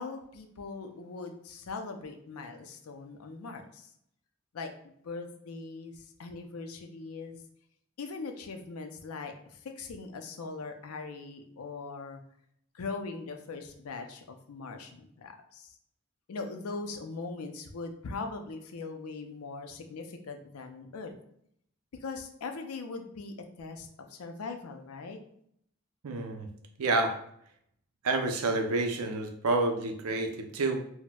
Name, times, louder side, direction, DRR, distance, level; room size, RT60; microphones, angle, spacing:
voice 1, 0.0-3.9 4.5-7.4 8.0-12.2 12.7-15.8 16.3-21.1 22.0-25.2, left 4 dB, 85° left, 5 dB, 0.4 m, -41 dB
voice 2, 26.0-26.5 26.8-27.2 28.0-30.8, right 2 dB, 85° right, 4 dB, 0.5 m, -29 dB
4.1 x 2.1 x 2.2 m, 0.69 s
head